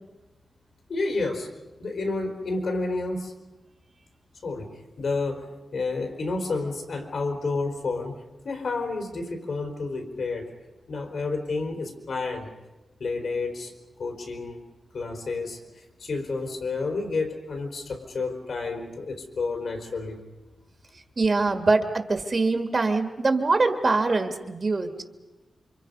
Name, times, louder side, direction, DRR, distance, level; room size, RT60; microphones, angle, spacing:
voice 1, 0.9-1.5 1.8-3.3 4.4-8.2 8.4-10.5 10.9-12.5 13.0-13.7 14.0-14.6 14.9-20.3, left 3 dB, 75° left, 3 dB, 4.1 m, -30 dB
voice 2, 21.2-25.0, right 3 dB, 40° right, 6 dB, 2.0 m, -23 dB
29.0 x 25.5 x 5.4 m, 1.1 s
wide cardioid pair, 140°, 0 cm